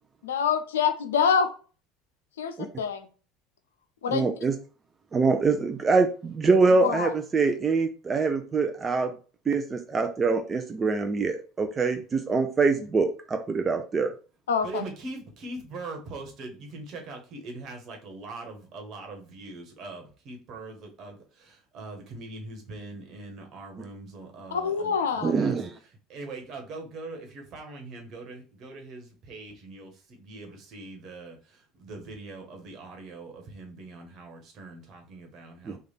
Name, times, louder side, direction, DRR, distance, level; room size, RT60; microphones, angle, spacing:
voice 1, 0.2-1.5 2.4-3.1 4.0-4.3 6.8-7.1 14.5-14.8 24.5-25.3, left 6 dB, 80° left, 8 dB, 0.5 m, -26 dB
voice 2, 4.1-4.5 5.1-9.1 9.5-14.1 25.2-25.7 35.7-35.8, right 4 dB, 30° right, 6 dB, 0.5 m, -24 dB
voice 3, 14.6-35.8, right 2 dB, 50° right, 3 dB, 1.3 m, -42 dB
3.3 x 2.4 x 4.0 m, 0.37 s
hypercardioid pair, 70°, 0 cm